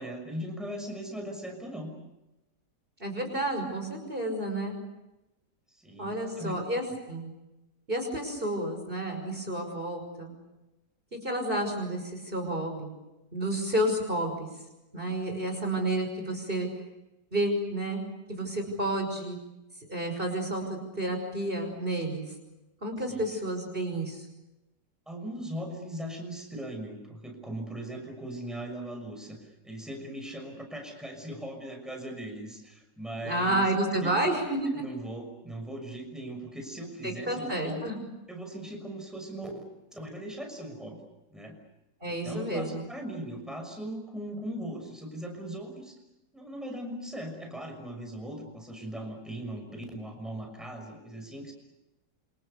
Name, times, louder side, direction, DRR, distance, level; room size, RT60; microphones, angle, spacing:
voice 1, 0.0-1.9 5.7-6.6 18.8-18.9 23.1-23.2 25.1-33.7 34.0-34.2 34.7-37.8 38.3-39.6 39.9-41.0 41.3-41.6 42.1-45.9 46.3-51.5, right 1 dB, ahead, 3 dB, 6.2 m, -39 dB
voice 2, 3.0-4.7 6.0-7.3 7.9-10.3 11.1-12.9 13.3-14.5 14.9-16.7 17.3-19.4 19.9-22.2 22.8-24.2 33.2-34.8 37.0-38.0 42.0-42.8, right 1 dB, 30° right, 4 dB, 5.9 m, -30 dB
28.5 x 27.0 x 7.0 m, 0.98 s
omnidirectional pair, 1.8 m